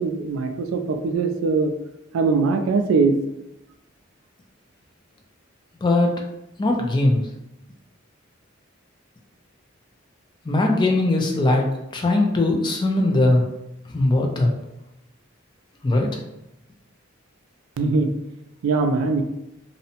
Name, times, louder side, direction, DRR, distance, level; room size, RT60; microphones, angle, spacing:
voice 1, 0.0-1.7 2.1-3.1 17.8-18.1 18.6-19.2, right 4 dB, 85° right, 6 dB, 0.3 m, -21 dB
voice 2, 5.8-6.2 6.6-7.2 10.4-11.6 11.9-13.4 13.9-14.5 15.8-16.2, left 2 dB, 20° left, 2 dB, 0.3 m, -20 dB
2.6 x 2.0 x 2.7 m, 0.87 s
head